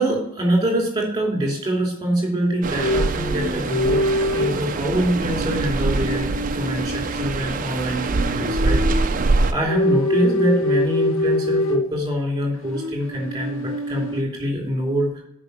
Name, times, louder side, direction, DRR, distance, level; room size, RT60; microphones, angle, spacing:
voice 1, 0.0-4.0 4.3-9.2 9.5-15.2, right 1 dB, 20° right, -2 dB, 2.6 m, -24 dB
sound 1, 2.6-9.5, right 3 dB, 40° right, 0.5 m, -24 dB
sound 2, 2.8-4.6 5.1-7.4 8.0-9.2 9.6-11.9 12.6-14.2, left 1 dB, 80° left, 1.1 m, -24 dB
6.5 x 4.9 x 6.6 m, 0.80 s
head